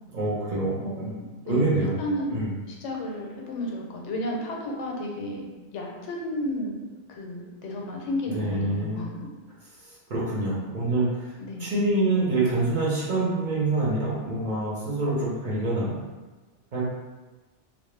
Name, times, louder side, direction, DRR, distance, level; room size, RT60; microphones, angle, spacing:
voice 1, 0.1-1.1 1.5-2.0 2.3-2.5 8.3-9.0 10.1-11.3 11.6-15.9 16.7-16.8, right 2 dB, 50° right, -6 dB, 0.7 m, -26 dB
voice 2, 0.8-2.3 2.7-5.5 5.7-9.3 11.4-11.7, left 1 dB, 85° left, -1 dB, 0.9 m, -33 dB
2.1 x 2.0 x 3.1 m, 1.2 s
omnidirectional pair, 1.2 m